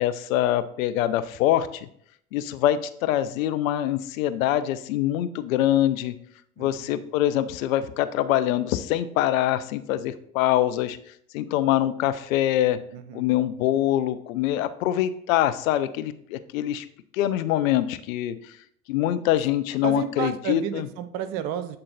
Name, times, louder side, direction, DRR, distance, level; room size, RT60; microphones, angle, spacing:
voice 1, 0.0-1.9 2.3-6.1 6.6-11.0 11.3-12.8 13.1-16.9 17.1-18.6 18.9-20.9, left 12 dB, 70° left, 12 dB, 0.6 m, -24 dB
voice 2, 6.6-7.0 12.9-13.3 19.8-21.8, right 10 dB, 55° right, 11 dB, 0.7 m, -32 dB
7.8 x 3.7 x 4.0 m, 0.67 s
hypercardioid pair, 70°, 42 cm